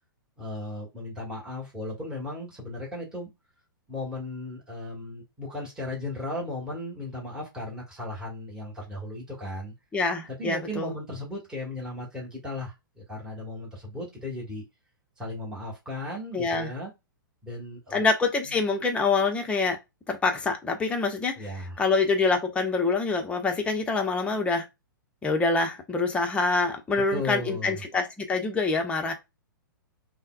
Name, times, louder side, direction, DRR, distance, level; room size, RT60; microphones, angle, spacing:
voice 1, 0.4-3.3 3.9-9.7 10.4-14.6 15.2-16.9 17.4-18.1 18.5-18.6 21.4-21.8 27.1-27.8, left 1 dB, 5° right, 1.2 m, -36 dB
voice 2, 9.9-10.9 16.3-16.7 17.9-19.8 20.1-21.5 21.8-24.7 25.2-29.1, left 3 dB, 10° left, 0.6 m, -25 dB
5.5 x 2.0 x 2.3 m
figure-of-eight pair, 110°, 11 cm